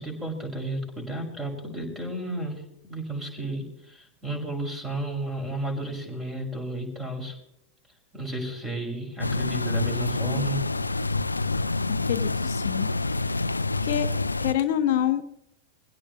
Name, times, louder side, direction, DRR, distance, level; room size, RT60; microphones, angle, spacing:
voice 1, 0.0-7.3 8.1-10.6, right 1 dB, 10° right, 2 dB, 5.9 m, -33 dB
sound 1, 9.2-14.5, left 3 dB, 80° left, 0.5 m, -27 dB
voice 2, 12.0-13.4 13.8-14.1 14.4-15.2, left 11 dB, 55° left, 10 dB, 0.8 m, -27 dB
24.0 x 16.5 x 3.1 m, 0.77 s
figure-of-eight pair, 90°, 0 cm